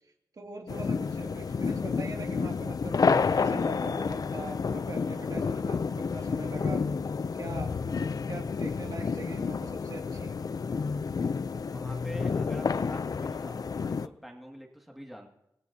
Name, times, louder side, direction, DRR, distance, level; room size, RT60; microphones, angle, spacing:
voice 1, 0.4-3.0 3.4-6.8 7.3-10.4, right 3 dB, 60° right, 2 dB, 2.4 m, -42 dB
sound 1, 0.7-14.1, left 5 dB, 60° left, 0.5 m, -30 dB
voice 2, 11.7-15.3, equal, ahead, 1 dB, 2.2 m, -46 dB
27.0 x 16.5 x 2.8 m, 0.84 s
wide cardioid pair, 80°, 7 cm